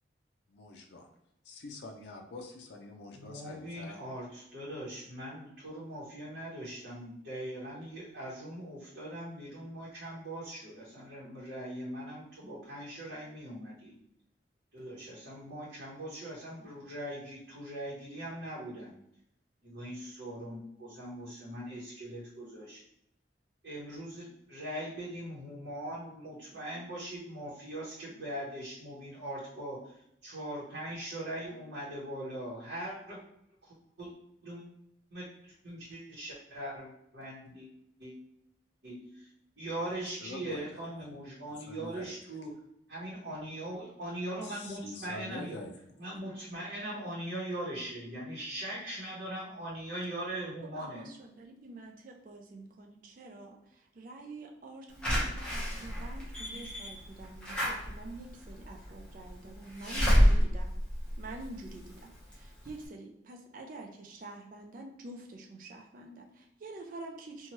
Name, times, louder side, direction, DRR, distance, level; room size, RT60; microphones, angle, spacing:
voice 1, 0.5-1.1 1.5-4.0 40.2-40.8 41.5-42.1 44.4-45.9, left 2 dB, 65° left, 2 dB, 0.4 m, -45 dB
voice 2, 3.1-13.9 14.7-18.9 19.6-22.8 23.6-33.2 34.0-34.1 34.4-34.7 35.1-37.7 38.0-38.1 38.8-42.6 42.9-45.6 46.0-51.1, right 1 dB, 75° right, -8 dB, 0.9 m, -41 dB
voice 3, 50.6-60.7 61.2-67.5, right 2 dB, 45° right, 1 dB, 0.3 m, -47 dB
Slam / Alarm, 55.0-61.8 62.3-62.4 62.7-62.8, equal, 5° left, 0.7 m, -28 dB
3.0 x 2.2 x 2.8 m, 0.77 s
head